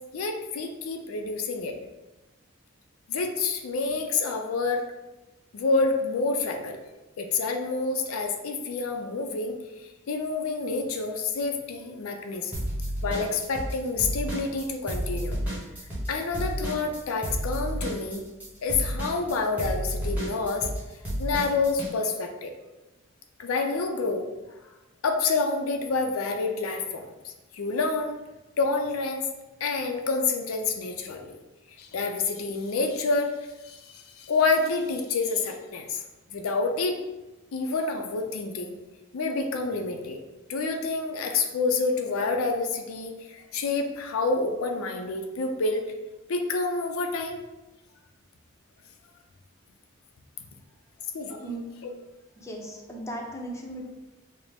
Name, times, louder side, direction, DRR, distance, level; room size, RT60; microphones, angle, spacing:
voice 1, 0.1-1.7 3.1-4.8 5.5-6.8 7.2-12.5 13.0-15.4 16.1-18.2 18.6-20.7 21.2-22.5 23.4-24.2 25.0-28.2 28.6-29.2 29.6-31.4 31.8-36.0 36.3-37.0 37.5-38.7 39.1-40.2 40.5-45.9 46.3-47.4 51.1-51.4, left 3 dB, 80° left, 4 dB, 0.5 m, -28 dB
sound 1, 12.5-13.7 14.0-21.9, right 1 dB, 10° right, 1.0 m, -31 dB
voice 2, 52.4-53.9, right 1 dB, 15° left, -1 dB, 0.6 m, -37 dB
4.9 x 2.0 x 3.4 m, 1.1 s
head